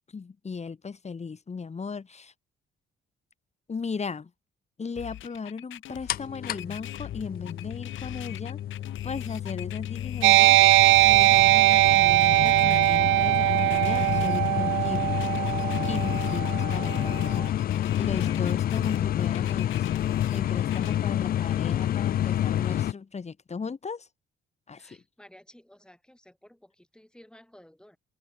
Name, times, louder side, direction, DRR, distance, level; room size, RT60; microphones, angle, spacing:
voice 1, 0.1-2.3 3.7-4.3 4.8-8.6 9.0-10.6 11.0-15.2 15.9-19.9 20.3-24.1 24.7-25.0, left 5 dB, 35° left, 3.2 m, -36 dB
sound 1, 5.0-21.0, left 13 dB, 80° left, 1.4 m, -43 dB
sound 2, 6.1-22.9, left 11 dB, 50° left, 0.4 m, -29 dB
sound 3, 10.2-17.3, right 19 dB, 90° right, 0.4 m, -21 dB
voice 2, 24.7-28.0, left 1 dB, 5° left, 5.7 m, -54 dB
open air
cardioid pair, 90°, 20 cm